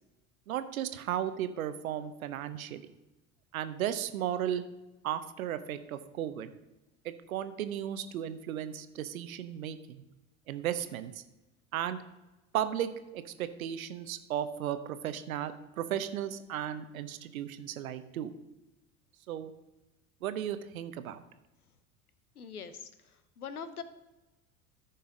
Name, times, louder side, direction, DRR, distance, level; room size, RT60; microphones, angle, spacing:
voice 1, 0.5-2.9 3.5-4.6 5.0-6.5 7.0-10.0 10.5-11.2 11.7-12.0 12.5-18.3 19.3-19.5 20.2-21.2, right 10 dB, 70° right, 11 dB, 0.8 m, -35 dB
voice 2, 22.3-23.8, left 6 dB, 85° left, 13 dB, 0.8 m, -43 dB
14.0 x 5.6 x 3.7 m, 1.1 s
figure-of-eight pair, 70°, 44 cm